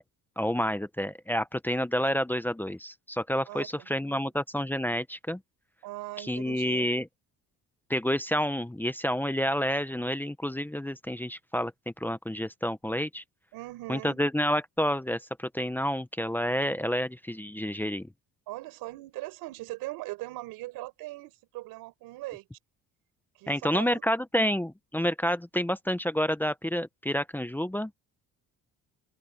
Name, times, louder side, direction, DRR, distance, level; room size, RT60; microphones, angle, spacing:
voice 1, 0.4-5.4 6.2-7.1 7.9-13.2 13.9-18.1 23.5-27.9, equal, 5° left, 1.0 m, -29 dB
voice 2, 3.5-4.2 5.8-6.9 13.5-14.2 18.5-22.5 23.4-24.0, right 19 dB, 90° right, 4.9 m, -40 dB
open air
cardioid pair, 100°, 35 cm